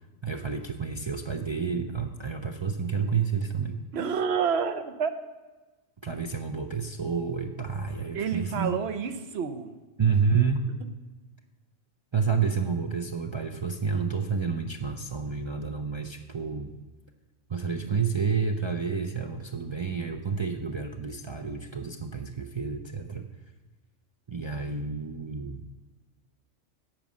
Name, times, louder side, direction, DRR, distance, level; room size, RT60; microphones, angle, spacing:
voice 1, 0.2-3.8 6.0-8.7 10.0-10.7 12.1-16.7 17.5-23.3 24.3-25.7, right 5 dB, 45° right, 4 dB, 0.3 m, -29 dB
voice 2, 3.9-5.1 8.1-9.7 10.8-10.9, right 6 dB, 60° right, 9 dB, 1.0 m, -29 dB
8.8 x 5.3 x 7.4 m, 1.2 s
omnidirectional pair, 1.3 m